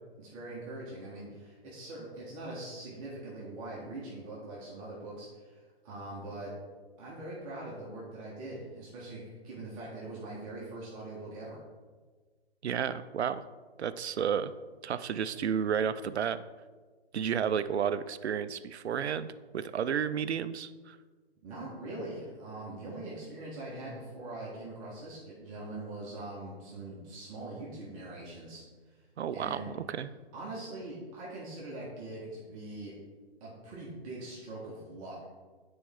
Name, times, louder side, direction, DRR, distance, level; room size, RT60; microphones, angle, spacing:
voice 1, 0.2-6.5 7.0-11.6 21.4-28.6 29.3-29.7 30.3-32.9 33.4-35.3, right 2 dB, 30° right, -5 dB, 1.7 m, -42 dB
voice 2, 12.6-13.4 13.8-14.5 14.8-16.4 17.1-21.0 29.2-30.1, right 8 dB, 80° right, 14 dB, 0.5 m, -32 dB
9.6 x 4.4 x 3.6 m, 1.4 s
hypercardioid pair, 140°, 33 cm